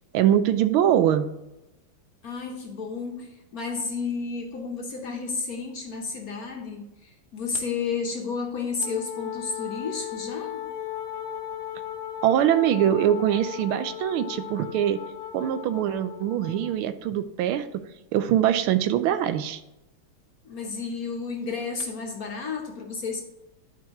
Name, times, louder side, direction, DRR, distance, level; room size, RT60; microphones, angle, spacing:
voice 1, 0.1-1.3 12.2-15.0 15.3-17.8 18.1-19.6, right 10 dB, 85° right, 11 dB, 1.5 m, -23 dB
voice 2, 2.2-10.7 20.4-23.2, left 4 dB, 55° left, 1 dB, 1.2 m, -32 dB
Wind instrument woodwind instrument, 8.8-16.8, left 10 dB, 70° left, 0.9 m, -37 dB
12.0 x 4.6 x 2.9 m, 0.91 s
omnidirectional pair, 2.3 m